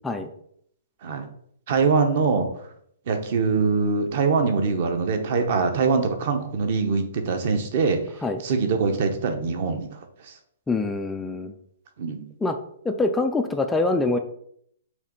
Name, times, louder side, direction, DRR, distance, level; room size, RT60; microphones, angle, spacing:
voice 1, 1.7-2.5 3.1-8.0 8.4-9.9 10.2-10.3 12.0-12.2, right 4 dB, 40° right, 6 dB, 0.9 m, -23 dB
voice 2, 10.7-11.6 12.4-12.6 12.8-14.2, left 3 dB, 5° left, 6 dB, 0.3 m, -24 dB
6.4 x 3.2 x 5.2 m, 0.67 s
hypercardioid pair, 175°, 0 cm